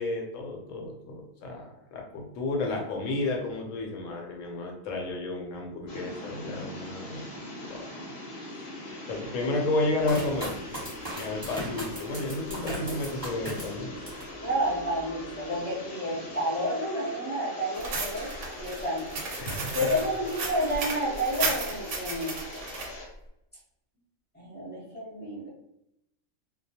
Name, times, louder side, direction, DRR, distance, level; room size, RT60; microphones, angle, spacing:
voice 1, 0.0-7.2 7.7-8.1 9.1-10.5 11.2-14.0 19.4-19.9, left 2 dB, 75° left, 1 dB, 1.0 m, -32 dB
sound 1, 5.9-23.1, left 1 dB, 55° left, 0.8 m, -41 dB
sound 2, 10.0-14.3 14.8-15.4, equal, 15° right, 1.0 m, -38 dB
voice 2, 14.4-19.0 19.7-22.3 24.3-25.5, equal, 10° left, -7 dB, 0.6 m, -30 dB
sound 3, 17.7-22.9, right 3 dB, 70° right, 0.9 m, -34 dB
2.3 x 2.0 x 2.7 m, 0.82 s
omnidirectional pair, 1.4 m